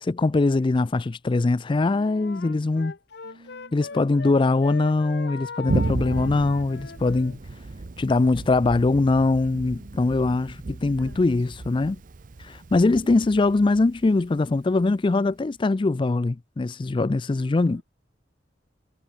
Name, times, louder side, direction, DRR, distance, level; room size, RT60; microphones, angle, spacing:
voice 1, 0.0-2.9 3.7-7.4 8.0-12.0 12.4-17.8, left 3 dB, 25° left, 0.4 m, -22 dB
Wind instrument woodwind instrument, 1.7-4.3 4.6-7.4, left 4 dB, 65° left, 0.8 m, -39 dB
voice 2, 3.2-4.6 9.5-10.2 10.8-11.5 12.7-13.5 17.3-17.8, right 1 dB, 70° right, 1.7 m, -50 dB
Thunder, 5.7-15.1, right 2 dB, 45° right, 0.6 m, -34 dB
head